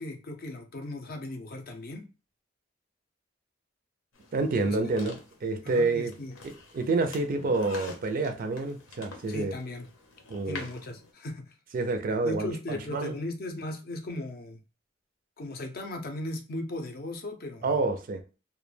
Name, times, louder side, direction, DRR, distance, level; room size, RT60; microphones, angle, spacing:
voice 1, 0.0-2.1 4.6-4.8 5.6-6.3 9.3-9.9 10.5-11.5 12.2-14.6 15.4-17.7, left 1 dB, 50° left, 0.5 m, -37 dB
sound 1, 4.1-11.1, left 3 dB, 85° left, 0.7 m, -48 dB
voice 2, 4.3-6.1 6.4-9.5 10.3-10.6 11.7-13.2 17.6-18.2, right 3 dB, 45° right, 0.3 m, -28 dB
2.2 x 2.1 x 3.1 m
head